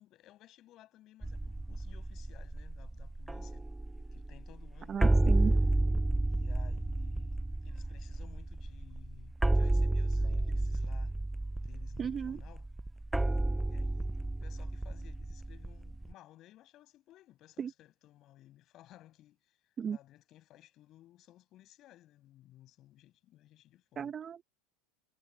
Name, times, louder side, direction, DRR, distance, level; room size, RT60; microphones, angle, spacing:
voice 1, 0.0-3.6 4.1-5.0 6.3-11.2 11.6-12.7 13.6-14.1 14.4-24.1, left 14 dB, 45° left, 7.4 m, -58 dB
sound 1, 1.2-16.1, right 2 dB, 5° right, 0.7 m, -31 dB
voice 2, 4.9-5.5 12.0-12.4 17.6-17.7 19.8-20.0 24.0-24.4, right 7 dB, 30° right, 1.8 m, -35 dB
hypercardioid pair, 95°, 0 cm